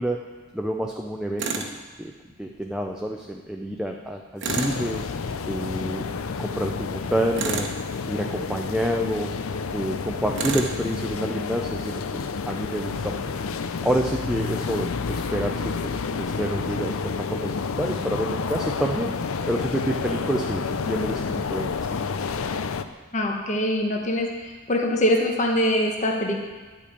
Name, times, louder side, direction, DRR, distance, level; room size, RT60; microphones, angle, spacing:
voice 1, 0.0-1.6 2.0-2.1 2.4-5.0 5.4-6.1 6.4-7.7 8.1-9.3 9.7-13.4 13.8-19.1 19.5-21.7, right 1 dB, 5° right, 1 dB, 0.5 m, -28 dB
Tools, 1.4-1.7 4.4-4.8 7.3-7.8 10.3-10.8, right 4 dB, 55° right, 1.0 m, -28 dB
sound 1, 4.5-22.8, left 5 dB, 75° left, 0.5 m, -30 dB
voice 2, 23.1-26.4, left 1 dB, 35° left, 0 dB, 1.3 m, -23 dB
11.0 x 5.3 x 8.3 m, 1.3 s
head